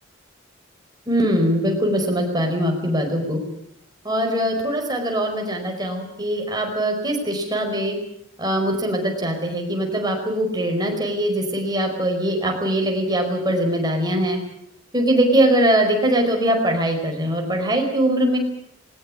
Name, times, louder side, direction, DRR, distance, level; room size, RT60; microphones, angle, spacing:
voice 1, 1.1-3.4 4.0-8.0 8.4-14.4 14.9-18.4, right 1 dB, 20° right, 2 dB, 5.0 m, -22 dB
20.5 x 19.5 x 8.7 m, 0.73 s
head